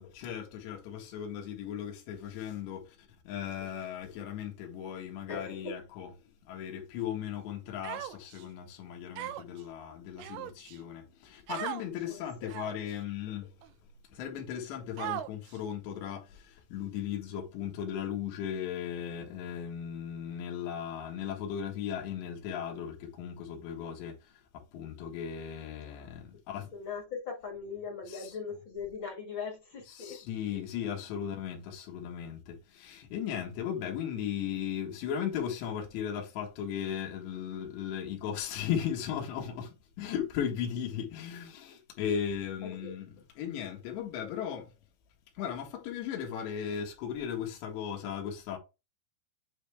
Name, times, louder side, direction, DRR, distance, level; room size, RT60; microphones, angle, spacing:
voice 1, 0.0-6.1 6.5-13.5 14.1-26.7 28.1-28.3 29.9-44.7 45.4-48.6, left 9 dB, 80° left, 3.6 m, -37 dB
voice 2, 5.3-5.7 12.1-12.2 26.7-30.2 30.5-30.6 42.6-42.9, left 5 dB, 45° left, 1.5 m, -40 dB
Human voice, 7.8-8.4 9.2-9.6 10.2-10.8 11.5-11.8 12.5-12.9 13.6-13.7 15.0-15.6, right 13 dB, 80° right, 2.2 m, -38 dB
8.9 x 3.4 x 3.3 m
omnidirectional pair, 5.0 m